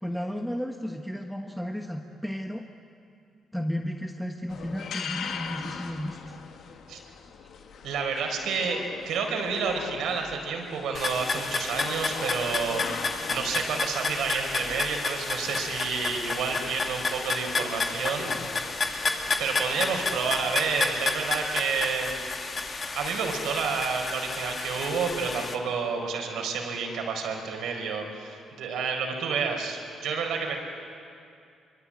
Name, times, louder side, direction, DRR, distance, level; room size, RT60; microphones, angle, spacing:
voice 1, 0.0-2.6 3.5-6.4, equal, ahead, 3 dB, 1.4 m, -33 dB
sound 1, 4.5-20.6, left 6 dB, 70° left, 1.7 m, -41 dB
voice 2, 7.8-8.8 9.0-18.3 19.4-22.1 22.9-30.6, right 5 dB, 80° right, 2 dB, 4.5 m, -30 dB
sound 2, 10.9-25.5, left 3 dB, 40° left, 2.1 m, -31 dB
24.5 x 23.5 x 8.7 m, 2.5 s
cardioid pair, 90°, 0 cm